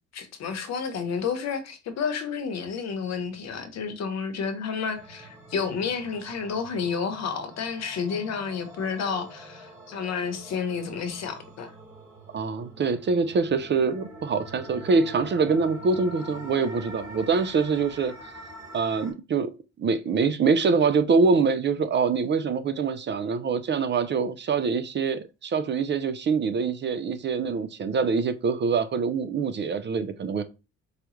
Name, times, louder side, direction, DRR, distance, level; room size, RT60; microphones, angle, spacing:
voice 1, 0.1-11.7, left 6 dB, 60° left, 0.9 m, -30 dB
sound 1, 4.9-19.1, equal, 10° right, 1.9 m, -45 dB
voice 2, 12.3-18.1 18.7-19.5 19.8-30.4, right 5 dB, 35° right, 0.5 m, -24 dB
4.8 x 2.3 x 3.0 m
cardioid pair, 105°, 30 cm